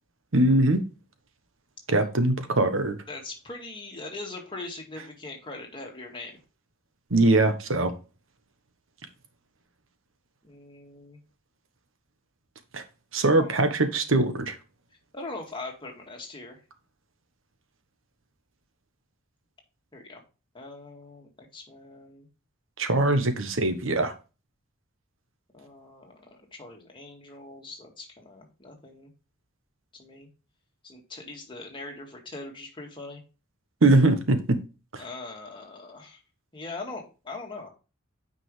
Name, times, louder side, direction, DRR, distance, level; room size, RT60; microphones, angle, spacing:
voice 1, 0.3-0.8 1.9-3.0 7.1-7.9 12.7-12.8 13.1-14.6 22.8-24.1 33.8-34.4, right 2 dB, 70° right, 1.1 m, -22 dB
voice 2, 3.1-6.4 10.4-11.2 13.3-13.6 15.1-16.6 19.9-20.2 20.5-22.3 25.5-29.1 29.9-30.3 30.8-33.2 35.0-36.2 36.5-37.7, left 3 dB, 25° left, 2.0 m, -41 dB
9.3 x 5.1 x 3.2 m
head